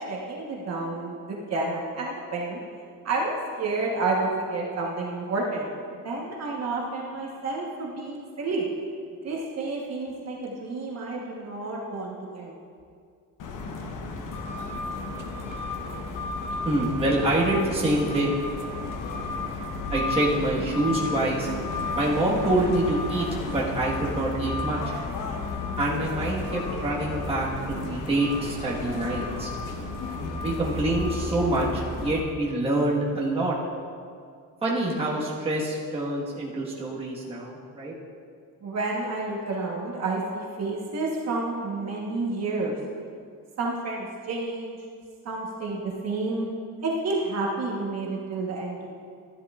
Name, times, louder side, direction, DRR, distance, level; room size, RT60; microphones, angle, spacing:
voice 1, 0.1-2.6 3.0-5.7 6.0-8.7 9.2-12.5 38.6-42.7 43.6-44.8 45.2-46.5 46.8-48.9, right 3 dB, 45° right, -2 dB, 1.2 m, -30 dB
sound 1, 13.4-32.2, left 3 dB, 65° left, 1.0 m, -32 dB
voice 2, 16.6-18.3 19.9-21.5 22.0-23.3 23.5-24.8 25.8-29.5 30.4-33.5 34.6-37.9, right 1 dB, 15° right, -5 dB, 1.4 m, -26 dB
12.5 x 11.0 x 2.4 m, 2.2 s
cardioid pair, 175°, 34 cm